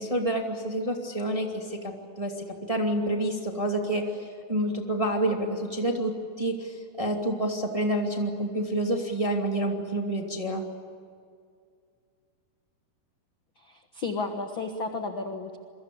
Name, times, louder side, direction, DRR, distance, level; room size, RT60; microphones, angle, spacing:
voice 1, 0.0-10.6, right 1 dB, 10° right, 2 dB, 1.6 m, -28 dB
voice 2, 13.6-15.6, left 3 dB, 65° left, 5 dB, 1.2 m, -33 dB
28.0 x 23.0 x 8.6 m, 2.3 s
omnidirectional pair, 4.6 m